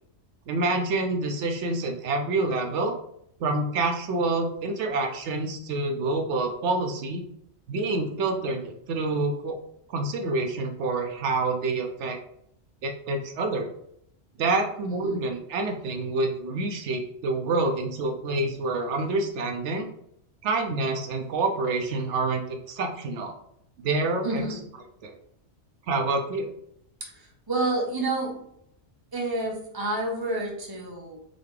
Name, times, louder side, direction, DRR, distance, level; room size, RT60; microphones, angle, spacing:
voice 1, 0.5-2.9 3.4-7.2 7.7-9.5 9.9-12.2 12.8-13.7 14.4-19.9 20.4-23.3 23.8-24.6 25.0-25.2 25.9-26.5, right 3 dB, 80° right, 4 dB, 0.9 m, -27 dB
voice 2, 14.9-15.2 24.2-24.6 27.1-28.4 29.1-31.2, right 2 dB, 20° right, -2 dB, 1.0 m, -29 dB
4.0 x 3.3 x 3.2 m, 0.71 s
omnidirectional pair, 1.2 m